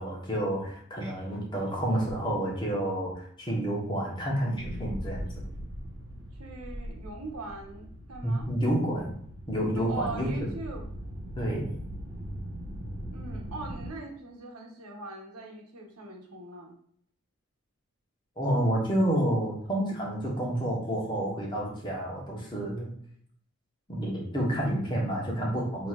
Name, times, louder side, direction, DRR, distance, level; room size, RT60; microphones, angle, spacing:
voice 1, 0.0-5.3 8.2-9.1 9.5-10.5 11.4-11.7 18.4-22.9 23.9-25.9, right 1 dB, 20° left, -3 dB, 1.1 m, -29 dB
sound 1, 4.5-13.9, equal, 60° right, 1.6 m, -40 dB
voice 2, 6.4-8.5 9.8-10.9 13.1-16.8, right 3 dB, 90° right, 1 dB, 1.0 m, -41 dB
6.0 x 3.0 x 2.4 m, 0.62 s
head